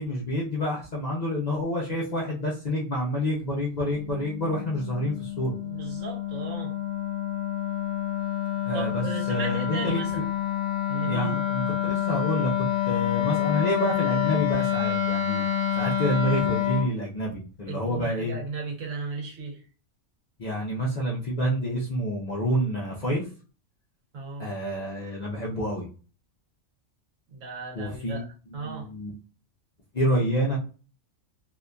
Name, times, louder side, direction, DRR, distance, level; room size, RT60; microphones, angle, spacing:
voice 1, 0.0-5.5 8.6-10.0 11.0-15.4 15.8-18.3 20.4-23.3 24.4-25.9 27.7-28.2 28.5-29.1 29.9-30.6, equal, 45° left, -4 dB, 0.5 m, -28 dB
Wind instrument woodwind instrument, 4.0-16.9, left 10 dB, 75° left, 1.0 m, -28 dB
voice 2, 5.6-6.7 8.7-10.3 10.9-11.4 17.7-19.6 24.1-24.5 27.3-28.2 28.5-28.9 30.1-30.3, right 4 dB, 75° right, 1 dB, 1.2 m, -36 dB
2.8 x 2.5 x 2.2 m, 0.36 s
omnidirectional pair, 1.3 m